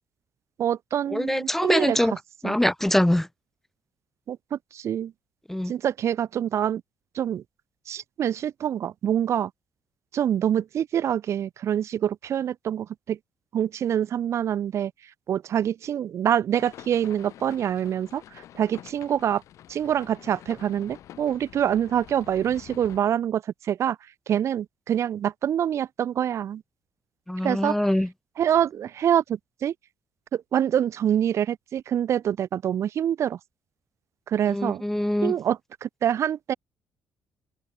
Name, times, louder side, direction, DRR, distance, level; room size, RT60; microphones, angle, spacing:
voice 1, 0.6-2.0 2.4-2.6 4.3-5.1 5.7-6.8 7.1-7.4 7.9-9.5 10.1-13.2 13.5-14.9 15.3-19.4 19.7-24.0 24.3-26.6 27.4-27.8 28.4-29.7 30.3-33.4 34.3-34.8 35.2-36.5, right 9 dB, 60° right, 1.1 m, -25 dB
voice 2, 1.1-2.1 2.4-3.3 5.5-5.7 27.3-28.1 34.5-35.3, left 1 dB, 5° left, 0.4 m, -23 dB
sound 1, 16.6-23.0, left 12 dB, 70° left, 2.6 m, -47 dB
supercardioid pair, 70°, 5 cm